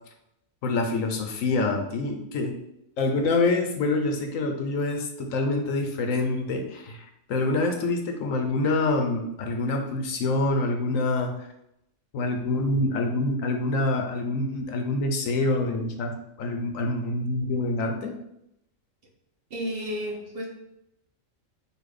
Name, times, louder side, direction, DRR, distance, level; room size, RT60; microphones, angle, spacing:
voice 1, 0.6-2.6 3.0-11.3 12.1-18.1, left 2 dB, 75° left, 4 dB, 1.1 m, -26 dB
voice 2, 19.5-20.5, equal, 50° right, -1 dB, 1.0 m, -32 dB
4.2 x 2.5 x 4.8 m, 0.81 s
omnidirectional pair, 1.4 m